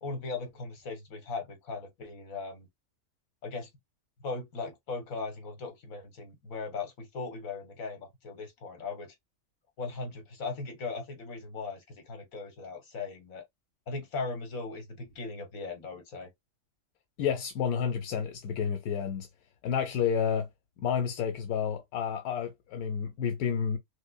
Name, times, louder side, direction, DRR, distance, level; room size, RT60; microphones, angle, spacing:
voice 1, 0.0-2.7 3.4-3.7 4.2-9.1 9.8-13.4 13.9-16.3, left 4 dB, 70° left, 1.6 m, -38 dB
voice 2, 17.2-19.3 19.6-20.5 20.8-23.8, left 7 dB, 85° left, 1.1 m, -30 dB
5.1 x 2.0 x 2.3 m
omnidirectional pair, 1.5 m